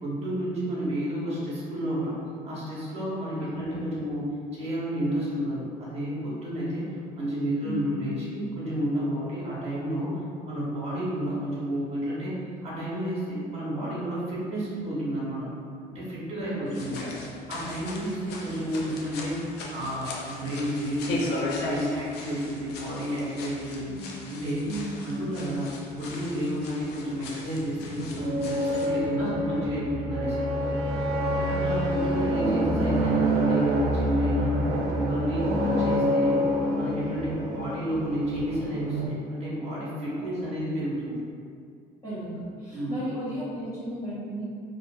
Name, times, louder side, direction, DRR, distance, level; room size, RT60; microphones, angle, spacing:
voice 1, 0.0-2.2 2.4-10.1 10.4-12.3 12.6-15.5 15.9-16.9 17.5-19.4 19.7-23.9 24.3-24.7 25.0-25.7 26.0-30.5 31.5-34.6 35.0-36.4 36.8-41.2 42.7-43.0, equal, 40° right, -7 dB, 0.9 m, -31 dB
voice 2, 3.4-3.8 7.6-8.0 16.4-17.1 18.0-18.3 23.9-24.2 24.7-25.0 29.2-29.5 31.4-31.7 35.6-35.7 40.2-40.6 42.0-44.4, right 1 dB, 20° left, -12 dB, 0.7 m, -36 dB
sound 1, 16.7-28.9, left 2 dB, 80° left, 0.4 m, -38 dB
sound 2, 27.4-39.1, equal, 80° right, 0.4 m, -27 dB
2.7 x 2.3 x 2.2 m, 2.2 s
cardioid pair, 110°, 17 cm